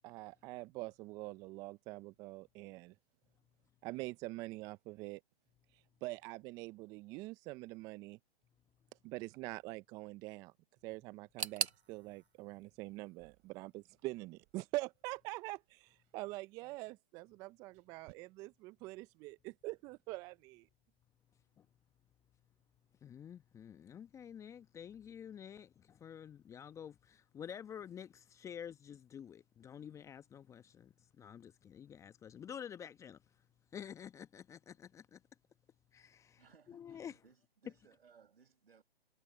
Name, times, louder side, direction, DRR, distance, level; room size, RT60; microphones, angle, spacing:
voice 1, 0.0-2.9 3.8-5.2 5.7-8.2 9.0-10.5 10.8-20.7, right 21 dB, 10° right, 0.6 m, -45 dB
sound 1, 11.3-18.1, right 39 dB, 25° right, 5.8 m, -71 dB
sound 2, 11.4-14.3 14.5-15.3 15.6-15.7 16.6-16.7, right 5 dB, 85° right, 1.3 m, -43 dB
voice 2, 23.0-33.2 33.7-35.2 35.9-36.4 36.7-37.2, left 8 dB, 10° left, 1.2 m, -49 dB
voice 3, 36.4-38.8, right 6 dB, 65° right, 5.5 m, -65 dB
figure-of-eight pair, 135°, 32 cm